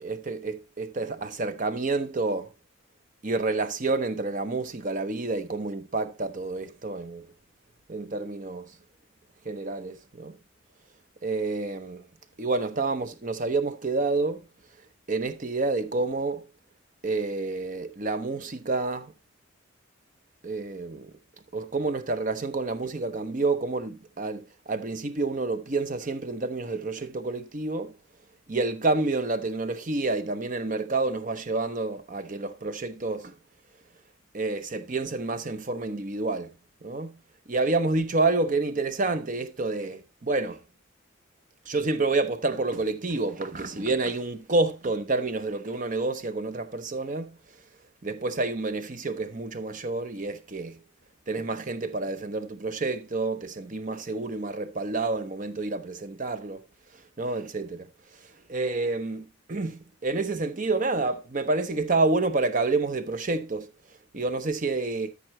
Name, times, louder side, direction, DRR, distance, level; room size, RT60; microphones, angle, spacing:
voice 1, 0.0-2.5 3.2-7.3 7.9-8.7 9.4-10.4 11.2-12.0 12.4-14.4 15.1-16.5 17.0-19.1 20.4-21.1 21.5-27.9 28.5-33.3 34.3-36.5 36.8-37.1 37.5-40.6 41.7-47.4 48.0-50.8 51.3-56.6 57.2-57.9 58.5-63.7 64.1-65.1, right 3 dB, 40° right, 0.8 m, -29 dB
13.5 x 5.4 x 3.0 m
head